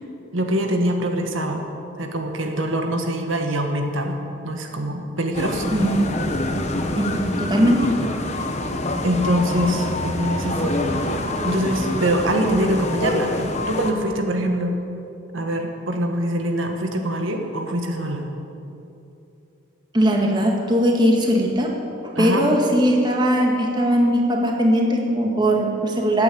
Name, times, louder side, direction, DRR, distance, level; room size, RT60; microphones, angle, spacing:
voice 1, 0.3-1.6 2.0-4.2 4.4-5.9 9.0-11.2 11.4-14.8 15.3-18.3 22.1-22.5, equal, 80° right, 4 dB, 1.7 m, -24 dB
sound 1, 5.3-13.9, left 1 dB, 35° left, 1.2 m, -26 dB
voice 2, 5.7-6.2 7.0-7.9 19.9-21.7 22.0-26.2, equal, 20° right, 0 dB, 1.7 m, -19 dB
16.0 x 8.9 x 8.6 m, 2.8 s
head